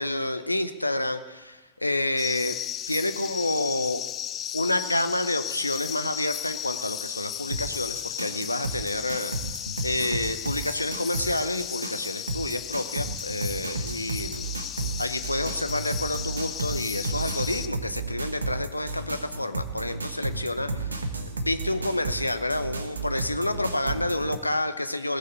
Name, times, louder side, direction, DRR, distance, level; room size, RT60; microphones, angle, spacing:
voice 1, 0.0-2.6 2.9-4.0 4.5-9.3 9.8-14.5 15.0-21.1 21.3-25.2, left 1 dB, 85° left, 10 dB, 0.8 m, -29 dB
sound 1, 2.2-17.7, left 11 dB, 30° left, 0.5 m, -35 dB
sound 2, 7.5-24.4, right 3 dB, 75° right, 1.2 m, -33 dB
17.0 x 6.6 x 9.1 m, 1.2 s
figure-of-eight pair, 90°, 0 cm